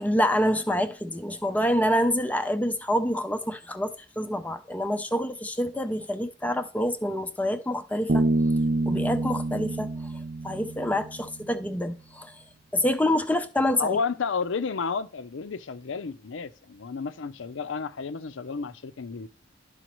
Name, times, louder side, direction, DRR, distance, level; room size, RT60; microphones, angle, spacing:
voice 1, 0.0-8.3 8.9-9.9 10.4-12.3 12.7-14.0, equal, 10° left, 0.5 m, -27 dB
Bass guitar, 8.1-11.6, right 2 dB, 45° right, 0.5 m, -27 dB
voice 2, 13.8-19.3, left 5 dB, 90° left, 0.5 m, -31 dB
11.5 x 5.0 x 3.0 m
head